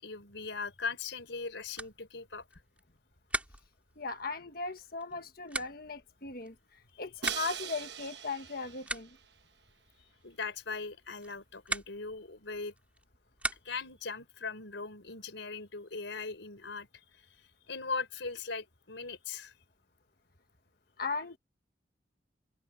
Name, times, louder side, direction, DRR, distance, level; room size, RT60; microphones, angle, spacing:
voice 1, 0.0-2.5 6.9-7.0 10.2-12.7 13.6-16.9 17.2-17.3 17.7-19.5, left 4 dB, 75° left, 4.1 m, -39 dB
sound 1, 1.2-14.0, right 2 dB, 5° right, 3.5 m, -43 dB
voice 2, 4.0-6.5 7.0-9.1 21.0-21.4, left 4 dB, 50° left, 1.5 m, -37 dB
Crash cymbal, 7.2-9.2, right 9 dB, 60° right, 1.1 m, -41 dB
head